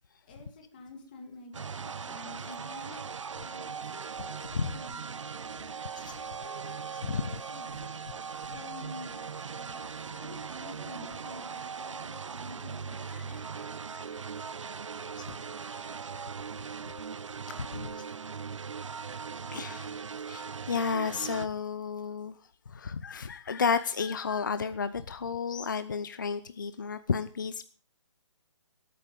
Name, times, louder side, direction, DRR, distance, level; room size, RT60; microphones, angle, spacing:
voice 1, 0.2-3.0 3.4-5.5 6.1-13.5, left 2 dB, 20° left, 3 dB, 1.9 m, -49 dB
sound 1, 1.5-21.5, right 6 dB, 70° right, 0.8 m, -39 dB
voice 2, 2.1-3.0 4.2-4.8 5.9-6.2 7.0-7.4 13.1-14.2 15.2-15.3 15.7-15.9 17.6-17.9 19.5-20.0 20.3-22.4 22.7-27.6, left 5 dB, 40° left, 13 dB, 0.6 m, -33 dB
20.0 x 8.5 x 5.2 m, 0.40 s
hypercardioid pair, 180°, 16 cm